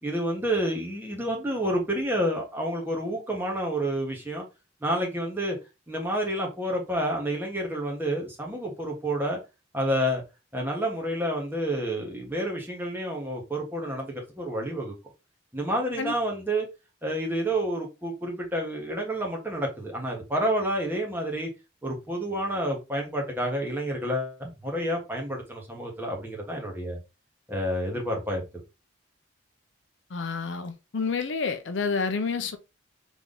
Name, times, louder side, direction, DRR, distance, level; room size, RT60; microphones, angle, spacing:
voice 1, 0.0-4.4 4.8-5.6 5.9-9.4 9.7-10.2 10.5-14.9 15.5-16.7 17.0-21.5 21.8-27.0 27.5-28.4, right 1 dB, 10° right, 1.5 m, -29 dB
voice 2, 30.1-32.6, left 4 dB, 65° left, 0.6 m, -29 dB
3.5 x 3.5 x 3.8 m
head